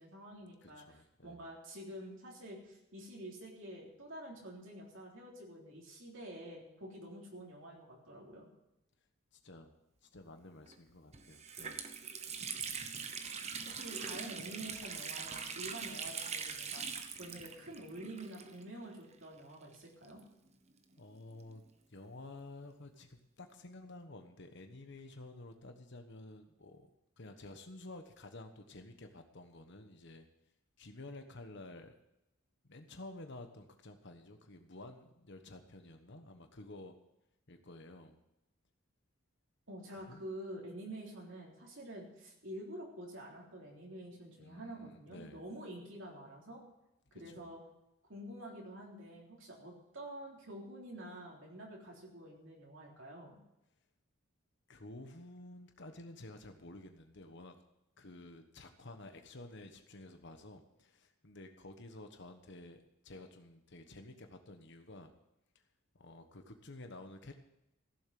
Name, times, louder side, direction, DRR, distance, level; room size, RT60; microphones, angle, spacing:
voice 1, 0.0-8.5 13.7-20.2 39.7-46.6 47.1-47.6 48.1-53.4, right 1 dB, 65° right, -2 dB, 3.6 m, -48 dB
voice 2, 0.6-1.5 9.3-9.7 10.1-11.8 21.0-21.6 21.9-26.9 27.2-30.2 30.8-31.9 32.6-37.0 37.5-38.2 39.9-40.2 44.4-45.4 47.1-47.3 54.7-57.6 58.0-65.1 65.9-67.3, left 2 dB, 55° left, 6 dB, 1.2 m, -51 dB
Water tap faucet, 10.7-10.8 11.1-18.9 19.1-19.2 20.0-21.6, right 6 dB, 30° right, 1.0 m, -43 dB
15.5 x 7.3 x 7.7 m, 0.88 s
head